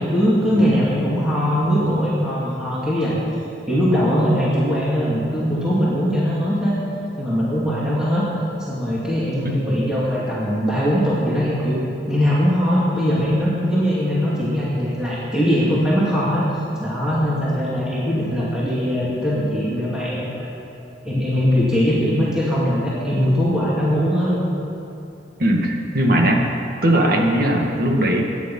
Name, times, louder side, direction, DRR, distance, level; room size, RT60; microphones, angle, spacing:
voice 1, 0.0-3.2 3.7-6.8 7.2-8.3 8.7-11.8 12.1-16.4 16.7-20.5 21.0-24.4, equal, 5° right, -9 dB, 2.5 m, -20 dB
voice 2, 25.4-26.5 26.8-28.2, right 1 dB, 55° right, 1 dB, 2.0 m, -19 dB
22.5 x 9.8 x 5.6 m, 2.8 s
head